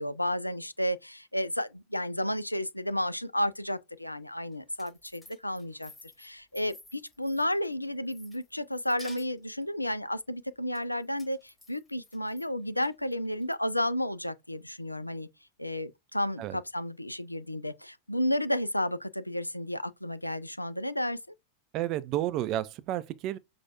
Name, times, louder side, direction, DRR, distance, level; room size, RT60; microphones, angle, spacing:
voice 1, 0.0-5.9 6.2-15.3 15.6-21.2, left 1 dB, 85° left, 0.3 m, -32 dB
sound 1, 4.5-7.7 8.1-9.6 10.7-12.5 12.8-13.5, left 2 dB, 10° left, 1.4 m, -53 dB
voice 2, 21.7-23.4, right 13 dB, 40° right, 0.4 m, -31 dB
5.8 x 2.3 x 2.8 m
figure-of-eight pair, 90°, 0 cm